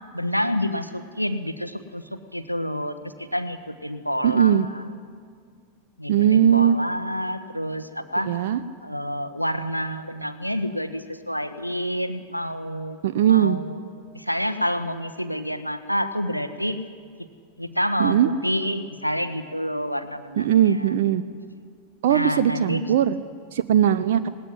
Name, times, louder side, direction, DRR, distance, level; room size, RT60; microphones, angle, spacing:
voice 1, 0.1-4.8 6.0-8.3 8.8-13.0 13.3-13.8 14.1-16.8 17.6-20.9 22.1-22.8, equal, 90° right, 11 dB, 1.1 m, -28 dB
voice 2, 4.2-4.7 6.1-6.8 8.3-8.6 13.0-13.6 18.0-18.3 20.4-21.2 22.0-23.2 23.5-24.3, right 10 dB, 55° right, 12 dB, 0.6 m, -19 dB
19.0 x 17.5 x 10.0 m, 2.1 s
figure-of-eight pair, 90°, 0 cm